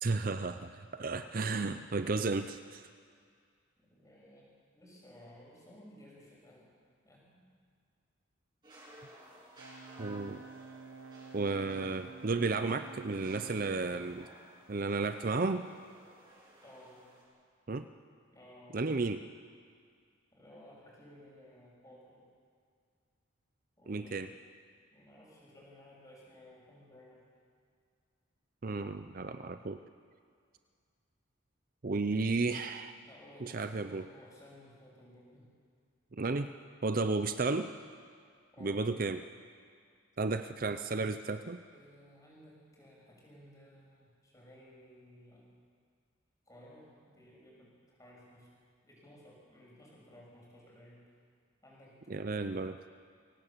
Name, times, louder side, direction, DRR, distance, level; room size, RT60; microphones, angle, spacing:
voice 1, 0.0-2.8 10.0-10.4 11.3-14.3 14.7-15.7 17.7-17.8 18.7-19.2 23.9-24.3 28.6-29.8 31.8-32.9 33.4-34.1 36.1-36.5 36.8-37.7 38.6-39.2 40.2-41.6 52.1-52.8, right 3 dB, 45° right, 9 dB, 0.6 m, -33 dB
voice 2, 3.8-6.7 7.0-7.5 14.2-14.4 16.6-17.0 18.3-18.9 20.3-22.2 23.8-24.2 24.9-27.2 33.0-35.5 38.5-38.8 41.7-45.4 46.5-48.5 48.8-51.1 51.6-52.4, left 1 dB, 15° left, -4 dB, 6.5 m, -57 dB
sound 1, 8.6-17.2, right 1 dB, 20° right, 6.8 m, -57 dB
Brass instrument, 9.6-13.8, right 4 dB, 85° right, 1.0 m, -50 dB
24.0 x 17.5 x 7.4 m, 2.1 s
head